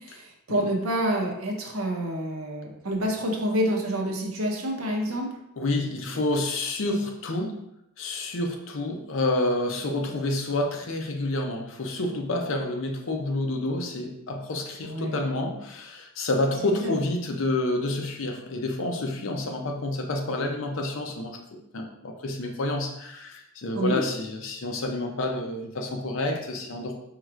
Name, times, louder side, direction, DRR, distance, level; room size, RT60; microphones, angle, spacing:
voice 1, 0.1-5.3 14.8-15.2 16.8-16.9 23.7-24.0, right 1 dB, 90° right, 1 dB, 0.8 m, -28 dB
voice 2, 5.6-7.6 8.0-27.0, left 2 dB, 65° left, 2 dB, 0.6 m, -29 dB
4.6 x 3.2 x 2.4 m, 0.81 s
head